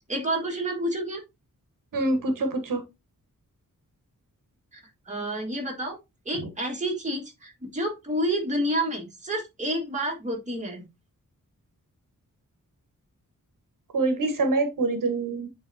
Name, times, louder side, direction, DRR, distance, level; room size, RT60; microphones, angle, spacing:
voice 1, 0.1-1.2 4.7-4.8 5.1-6.0 6.3-10.9, right 1 dB, 20° right, 0 dB, 1.9 m, -29 dB
voice 2, 1.9-2.8 6.4-6.5 13.9-15.5, right 2 dB, 80° right, 7 dB, 1.4 m, -25 dB
8.8 x 4.0 x 2.7 m, 0.22 s
wide cardioid pair, 180°, 32 cm